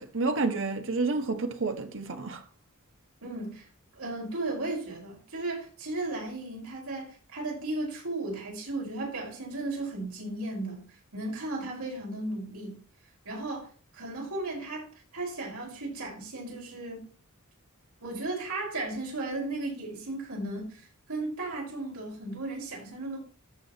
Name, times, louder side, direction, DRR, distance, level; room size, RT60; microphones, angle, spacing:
voice 1, 0.0-2.4, right 3 dB, 60° right, 1.5 m, -29 dB
voice 2, 3.2-3.7 3.9-10.9 11.1-12.8 13.3-17.0 18.0-23.2, right 2 dB, 85° right, 5.3 m, -35 dB
14.0 x 6.4 x 3.0 m
head